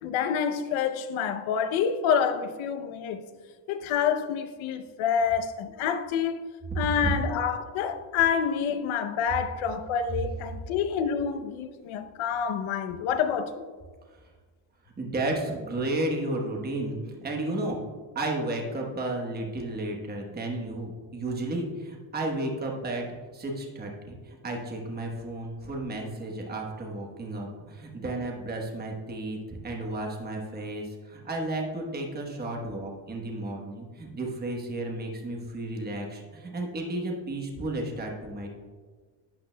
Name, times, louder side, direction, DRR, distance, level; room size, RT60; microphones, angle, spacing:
voice 1, 0.0-3.2 3.7-6.4 6.8-13.7, left 7 dB, 80° left, 0.8 m, -27 dB
voice 2, 15.0-17.8 18.1-23.0 23.3-38.5, right 2 dB, 20° right, 1.1 m, -33 dB
12.0 x 8.6 x 2.2 m
cardioid pair, 155°, 48 cm